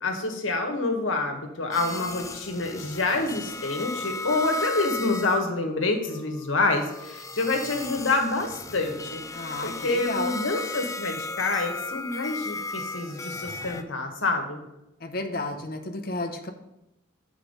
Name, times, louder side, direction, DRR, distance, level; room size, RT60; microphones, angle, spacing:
voice 1, 0.0-14.6, left 3 dB, 80° left, 3 dB, 1.4 m, -27 dB
sound 1, 1.7-5.4 5.8-13.8, left 2 dB, 15° left, 0.3 m, -35 dB
voice 2, 9.3-10.4 15.0-16.5, left 2 dB, 50° left, 6 dB, 0.8 m, -32 dB
8.0 x 4.6 x 5.3 m, 0.90 s
head